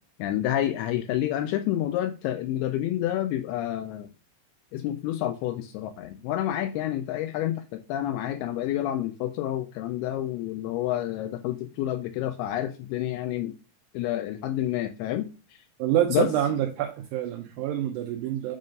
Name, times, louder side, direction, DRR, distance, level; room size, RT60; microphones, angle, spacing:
voice 1, 0.2-4.1 4.7-13.5 13.9-15.6 16.1-16.3, left 12 dB, 85° left, 2.3 m, -29 dB
voice 2, 15.8-18.6, right 11 dB, 85° right, 2.1 m, -26 dB
7.5 x 2.6 x 5.2 m
omnidirectional pair, 4.8 m